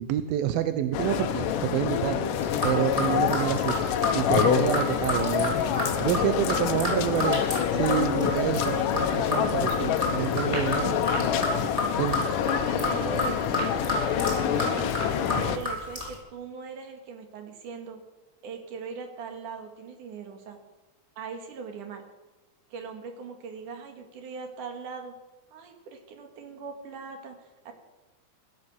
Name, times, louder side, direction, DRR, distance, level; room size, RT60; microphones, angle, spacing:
voice 1, 0.0-2.2 2.6-3.8 4.1-5.5 6.0-7.4 7.7-11.7 12.0-12.2, right 11 dB, 80° right, 10 dB, 2.1 m, -28 dB
sound 1, 0.9-15.6, left 8 dB, 80° left, 1.9 m, -26 dB
sound 2, 2.4-16.2, left 1 dB, 10° right, 3.9 m, -32 dB
voice 2, 5.5-6.5 8.1-8.9 12.2-14.9 15.5-18.0 18.4-20.6 21.2-22.0 22.7-25.1 25.5-27.4 27.6-27.7, right 5 dB, 55° right, 5 dB, 3.0 m, -40 dB
sound 3, 10.4-11.2 11.5-11.8 12.1-15.7, equal, 10° left, 7.7 m, -38 dB
16.0 x 12.5 x 7.1 m, 1.2 s
omnidirectional pair, 5.0 m